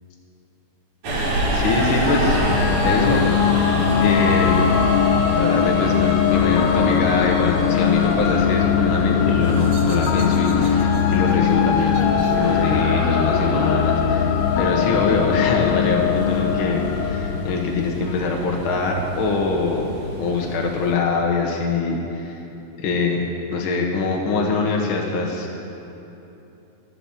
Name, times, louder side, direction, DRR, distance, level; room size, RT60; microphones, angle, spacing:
Subway metro underground, 1.0-20.9, right 1 dB, 70° right, 3.9 m, -28 dB
voice 1, 1.5-2.4 2.8-3.3 3.8-4.9 5.3-19.9 20.2-22.4 22.8-23.2 23.5-25.5, left 3 dB, 55° left, 0 dB, 1.8 m, -24 dB
sound 1, 2.1-18.3, left 8 dB, 75° left, 1.9 m, -20 dB
sound 2, 9.2-14.6, right 2 dB, 55° right, 2.2 m, -35 dB
13.0 x 7.9 x 8.9 m, 3.0 s
omnidirectional pair, 3.3 m